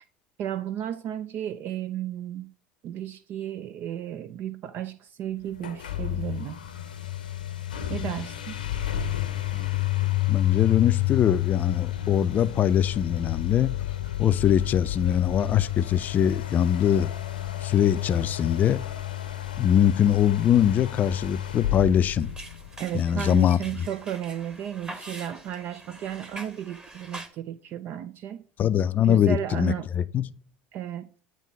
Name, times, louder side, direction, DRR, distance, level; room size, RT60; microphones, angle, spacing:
voice 1, 0.4-2.5 2.8-6.6 7.9-8.6 22.8-28.4 29.0-29.9 30.7-31.1, right 10 dB, 50° right, 0.4 m, -33 dB
sound 1, 5.5-23.0, left 14 dB, 85° left, 0.8 m, -30 dB
voice 2, 10.3-13.7 14.2-17.1 17.6-18.8 19.6-22.3 22.9-23.6 28.6-30.3, left 9 dB, 40° left, 0.4 m, -22 dB
sound 2, 22.2-27.3, right 2 dB, 20° right, 1.3 m, -43 dB
9.0 x 3.0 x 5.5 m
hypercardioid pair, 75°, 5 cm